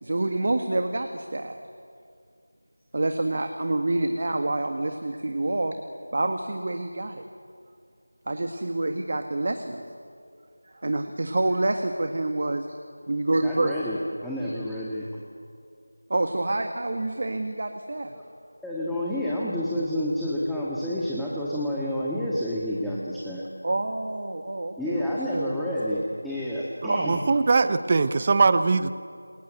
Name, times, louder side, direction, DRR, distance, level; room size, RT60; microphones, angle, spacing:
voice 1, 0.0-1.6 2.9-5.8 6.1-7.2 8.3-9.8 10.6-12.7 13.1-13.8 16.1-18.1 23.6-25.1 25.3-25.6 26.9-27.1, right 2 dB, 45° right, 6 dB, 1.7 m, -27 dB
voice 2, 13.4-15.0 18.6-23.4 24.8-27.2, left 1 dB, ahead, -9 dB, 1.7 m, -29 dB
voice 3, 27.0-28.9, right 4 dB, 30° right, 13 dB, 0.9 m, -21 dB
28.0 x 21.0 x 8.1 m, 2.3 s
figure-of-eight pair, 170°, 0 cm